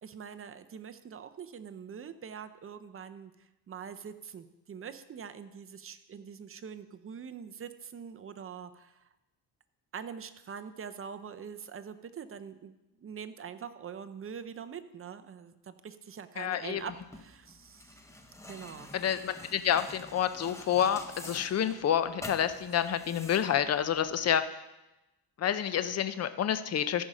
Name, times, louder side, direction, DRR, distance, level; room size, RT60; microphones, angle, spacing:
voice 1, 0.0-3.3 3.7-9.0 9.9-18.0 18.5-18.9, right 7 dB, 30° right, 10 dB, 0.5 m, -44 dB
voice 2, 16.4-16.8 18.9-24.4 25.4-27.0, left 9 dB, 35° left, 12 dB, 0.5 m, -28 dB
sound 1, 16.8-24.4, left 1 dB, 5° left, 0.8 m, -48 dB
14.0 x 5.5 x 4.9 m, 1.0 s
cardioid pair, 130°, 43 cm